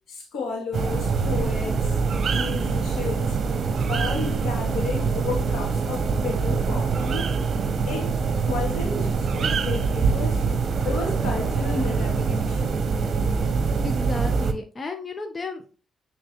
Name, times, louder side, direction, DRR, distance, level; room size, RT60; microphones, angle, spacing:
voice 1, 0.1-3.4 3.9-7.4 7.9-10.4 10.8-12.8, left 4 dB, 80° left, 2.4 m, -33 dB
sound 1, 0.7-14.5, right 5 dB, 55° right, 0.8 m, -24 dB
voice 2, 13.8-15.8, left 3 dB, 35° left, 0.9 m, -33 dB
8.5 x 3.8 x 3.0 m
cardioid pair, 80°, 0 cm